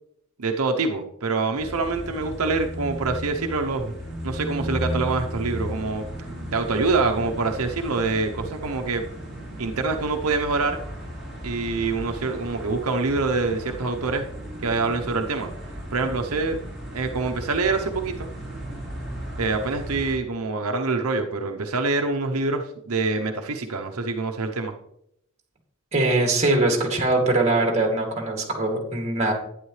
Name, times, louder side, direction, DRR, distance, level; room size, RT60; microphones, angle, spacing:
voice 1, 0.4-3.9 4.2-6.1 6.5-9.0 9.6-10.8 11.4-14.2 14.6-15.5 15.9-16.6 16.9-18.3 19.4-24.7, right 3 dB, 85° right, 4 dB, 0.8 m, -25 dB
sound 1, 1.6-20.1, equal, ahead, 4.6 m, -35 dB
voice 2, 25.9-29.3, right 2 dB, 30° right, 2 dB, 2.5 m, -22 dB
11.0 x 9.7 x 3.2 m, 0.75 s
head